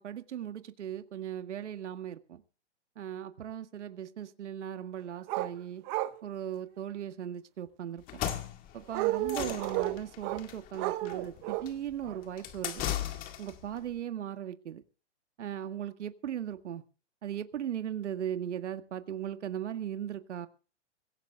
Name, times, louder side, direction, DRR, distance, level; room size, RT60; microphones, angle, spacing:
voice 1, 0.0-2.4 3.0-5.8 6.2-8.2 8.7-12.8 13.4-14.8 15.4-16.8 17.2-20.5, right 10 dB, 75° right, 9 dB, 1.7 m, -38 dB
sound 1, 5.3-5.5 5.9-6.2 8.9-10.4 10.8-11.7 12.0-12.2, right 17 dB, 20° right, 0.6 m, -32 dB
sound 2, 8.0-13.7, left 11 dB, 25° left, 1.9 m, -38 dB
25.0 x 17.0 x 2.4 m, 0.37 s
hypercardioid pair, 150°, 36 cm